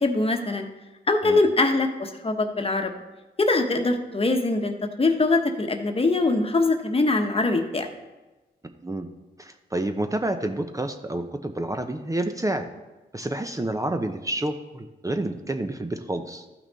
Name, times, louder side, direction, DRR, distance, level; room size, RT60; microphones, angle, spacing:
voice 1, 0.0-0.7 1.1-2.9 3.4-7.9, left 2 dB, 30° left, 5 dB, 1.2 m, -23 dB
voice 2, 9.4-12.7 13.1-16.4, right 1 dB, 20° right, 6 dB, 0.8 m, -29 dB
13.5 x 5.9 x 4.1 m, 1.1 s
cardioid pair, 60°, 18 cm